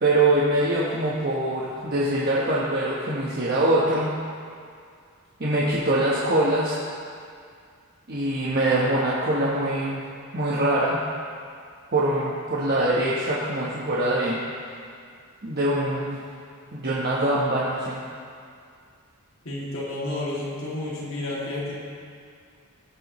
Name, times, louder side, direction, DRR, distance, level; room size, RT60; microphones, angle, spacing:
voice 1, 0.0-4.1 5.4-6.8 8.1-10.0 10.3-11.0 11.9-14.4 15.4-16.3 16.7-18.0, right 1 dB, 45° right, -6 dB, 1.1 m, -23 dB
voice 2, 19.4-21.8, left 2 dB, 60° left, -6 dB, 2.5 m, -31 dB
17.5 x 7.9 x 3.1 m, 2.2 s
head